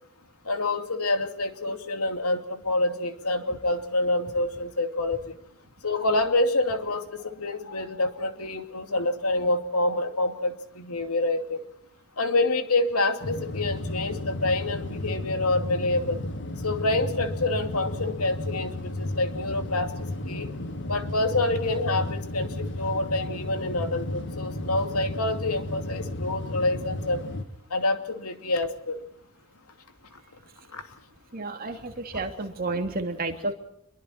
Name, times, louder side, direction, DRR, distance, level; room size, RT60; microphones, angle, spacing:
voice 1, 0.4-5.4 5.8-11.6 12.2-16.2 16.6-19.9 20.3-20.5 20.9-27.2 27.7-29.0 30.7-30.8, left 2 dB, 85° left, 7 dB, 2.6 m, -27 dB
sound 1, 13.2-27.4, left 1 dB, 55° left, 1.9 m, -33 dB
voice 2, 31.3-33.5, right 2 dB, 40° right, 4 dB, 2.9 m, -31 dB
27.0 x 22.5 x 4.5 m, 0.76 s
head